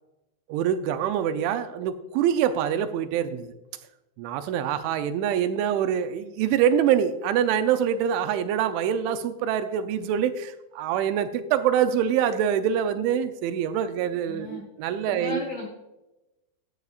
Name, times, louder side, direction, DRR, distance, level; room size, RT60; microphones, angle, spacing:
voice 1, 0.5-3.5 4.2-15.4, right 9 dB, 85° right, 9 dB, 2.9 m, -25 dB
voice 2, 14.3-14.7 15.1-15.7, left 3 dB, 70° left, 0 dB, 1.9 m, -34 dB
14.0 x 9.7 x 2.4 m, 0.96 s
omnidirectional pair, 5.5 m